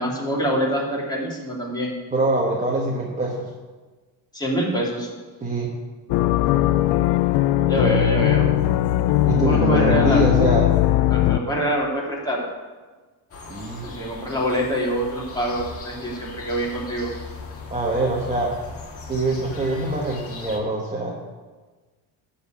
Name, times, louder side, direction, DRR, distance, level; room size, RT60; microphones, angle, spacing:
voice 1, 0.0-2.0 4.3-5.1 7.7-8.5 9.2-10.3 11.1-12.4 13.8-17.1, equal, 10° left, -4 dB, 2.8 m, -25 dB
voice 2, 2.1-3.5 5.4-5.7 9.3-10.6 13.5-13.9 17.7-18.5 19.1-21.2, right 2 dB, 15° right, -4 dB, 1.4 m, -23 dB
sound 1, 6.1-11.4, left 13 dB, 75° left, 0.5 m, -19 dB
sound 2, 13.3-20.6, left 3 dB, 35° left, 1.7 m, -39 dB
12.0 x 4.3 x 8.1 m, 1.3 s
cardioid pair, 115°, 41 cm